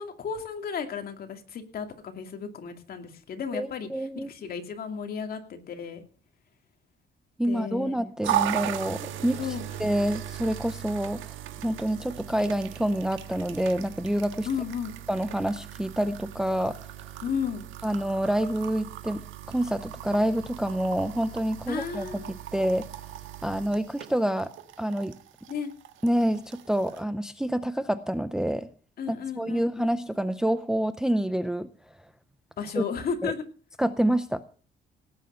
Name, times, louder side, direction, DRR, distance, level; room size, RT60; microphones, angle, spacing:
voice 1, 0.0-6.0 7.5-8.0 9.4-9.6 14.4-15.0 17.2-17.7 21.7-22.3 25.5-25.7 29.0-30.0 32.6-33.4, left 6 dB, 50° left, 5 dB, 2.5 m, -34 dB
voice 2, 3.5-4.3 7.4-9.4 9.8-11.3 11.6-14.5 15.1-16.8 17.8-19.2 19.5-22.2 22.5-22.9 23.4-24.5 24.8-25.2 26.0-28.7 29.1-31.7 32.8-32.9 33.2-33.3 33.8-34.4, right 1 dB, 5° right, 11 dB, 0.6 m, -27 dB
sound 1, 8.2-27.0, right 12 dB, 90° right, 1.5 m, -37 dB
18.0 x 9.0 x 5.6 m, 0.39 s
cardioid pair, 155°, 20 cm